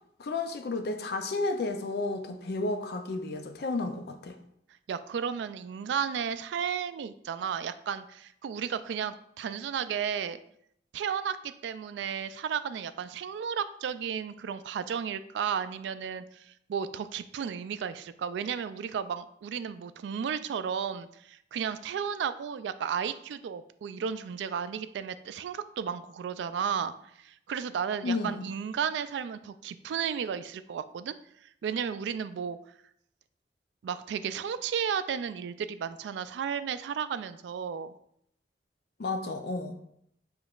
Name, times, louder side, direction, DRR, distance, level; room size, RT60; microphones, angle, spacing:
voice 1, 0.2-4.4 28.0-28.5 39.0-39.8, left 3 dB, 60° left, 6 dB, 0.4 m, -32 dB
voice 2, 4.9-10.4 10.9-26.9 27.2-31.1 31.6-32.6 33.8-37.9, right 7 dB, 80° right, 12 dB, 0.3 m, -33 dB
6.9 x 3.1 x 2.4 m, 0.72 s
head